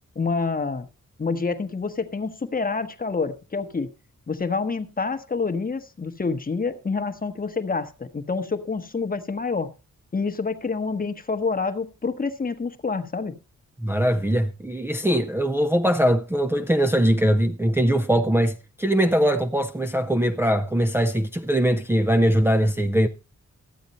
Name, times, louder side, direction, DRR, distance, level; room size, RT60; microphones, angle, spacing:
voice 1, 0.1-0.9 1.2-3.9 4.3-9.7 10.1-13.3, left 4 dB, 30° left, 1.0 m, -27 dB
voice 2, 13.8-23.1, equal, 10° right, 0.5 m, -21 dB
13.5 x 8.8 x 4.1 m
wide cardioid pair, 155°, 31 cm